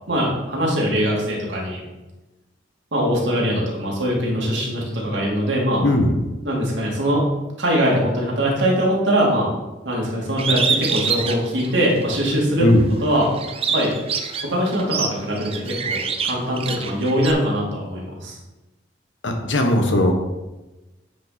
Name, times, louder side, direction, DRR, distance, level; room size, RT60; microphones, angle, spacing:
voice 1, 0.1-1.8 2.9-5.8 6.4-7.3 7.6-9.5 9.8-12.7 13.0-13.3 13.7-13.9 14.4-18.4, equal, 85° right, -3 dB, 2.5 m, -22 dB
voice 2, 5.8-6.1 12.6-12.8 19.2-20.1, left 1 dB, 90° left, 4 dB, 1.3 m, -17 dB
Bird, 10.4-12.4 12.8-17.3, right 5 dB, 30° right, 0.6 m, -26 dB
9.4 x 5.2 x 4.1 m, 1.1 s
head